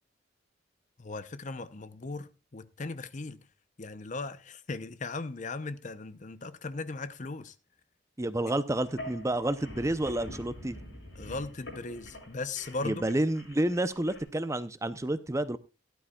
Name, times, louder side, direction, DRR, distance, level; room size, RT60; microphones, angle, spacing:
voice 1, 1.0-3.4 3.8-7.5 11.2-13.1, left 3 dB, 40° left, 0.7 m, -38 dB
voice 2, 8.2-10.7 12.8-15.6, right 1 dB, 15° right, 0.6 m, -29 dB
sound 1, 8.8-14.2, left 1 dB, 75° left, 6.8 m, -46 dB
17.0 x 11.5 x 2.3 m
head